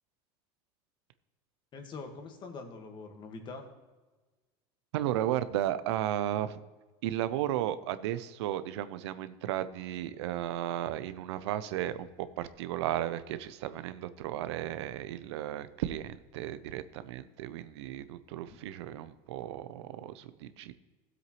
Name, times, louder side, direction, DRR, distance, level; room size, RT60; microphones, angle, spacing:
voice 1, 1.7-3.7 18.4-18.6, left 4 dB, 35° left, 4 dB, 1.6 m, -44 dB
voice 2, 4.9-6.6 7.0-20.7, right 12 dB, 85° right, 13 dB, 0.6 m, -34 dB
15.0 x 7.9 x 3.1 m, 1.2 s
supercardioid pair, 130°, 14 cm